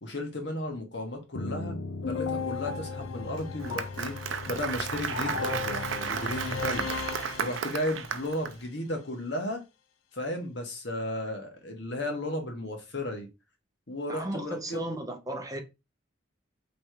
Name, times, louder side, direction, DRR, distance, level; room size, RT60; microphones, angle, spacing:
voice 1, 0.0-1.8 2.1-6.9 7.4-9.6 10.1-13.3 13.9-14.8, left 1 dB, 60° left, 1.3 m, -34 dB
sound 1, 1.3-8.1, left 4 dB, 90° left, 0.5 m, -35 dB
Applause, 3.4-8.5, right 7 dB, 70° right, 0.5 m, -34 dB
voice 2, 14.1-15.6, right 1 dB, 20° right, 0.6 m, -35 dB
3.5 x 3.2 x 4.6 m
head